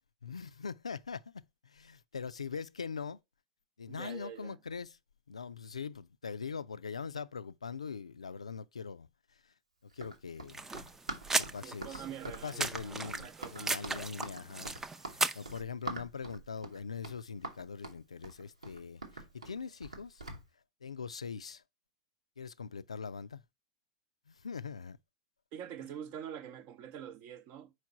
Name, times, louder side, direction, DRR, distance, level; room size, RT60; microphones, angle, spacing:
voice 1, 0.2-3.2 3.8-4.9 5.3-9.1 9.9-10.6 11.4-12.1 12.4-14.8 15.0-20.2 20.8-21.6 22.4-23.4 24.3-25.0, left 5 dB, 80° left, 0.3 m, -42 dB
voice 2, 3.9-4.6 11.6-13.9 25.5-27.7, right 9 dB, 45° right, 0.7 m, -45 dB
Run, 9.9-20.4, right 2 dB, 85° right, 1.2 m, -45 dB
sound 1, 10.5-15.6, right 3 dB, 10° right, 0.5 m, -36 dB
4.8 x 4.3 x 5.8 m
figure-of-eight pair, 90°, 3 cm